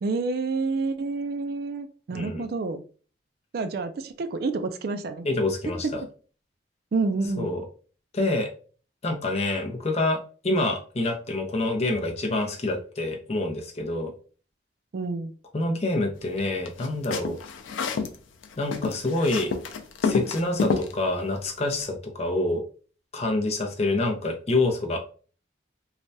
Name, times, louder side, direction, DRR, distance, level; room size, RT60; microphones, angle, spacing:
voice 1, 0.0-2.8 3.5-5.3 5.8-5.9 6.9-7.5 14.9-15.3, right 3 dB, 50° right, 0.3 m, -28 dB
voice 2, 2.1-2.5 5.2-6.0 7.4-7.6 8.1-8.5 9.0-14.1 15.5-17.4 18.6-19.5 20.0-22.6 23.1-25.0, left 2 dB, 35° left, 0.5 m, -27 dB
sound 1, 16.7-18.2 18.4-20.9, left 4 dB, 85° left, 0.4 m, -28 dB
3.2 x 2.2 x 2.6 m
head